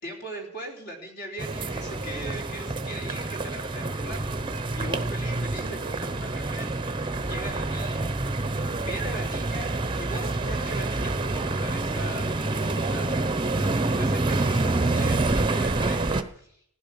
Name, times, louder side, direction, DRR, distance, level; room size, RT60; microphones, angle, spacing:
voice 1, 0.0-16.6, right 1 dB, 50° left, 1 dB, 3.8 m, -40 dB
sound 1, 1.4-16.2, right 2 dB, 20° right, 0.8 m, -27 dB
15.5 x 11.0 x 7.2 m, 0.67 s
head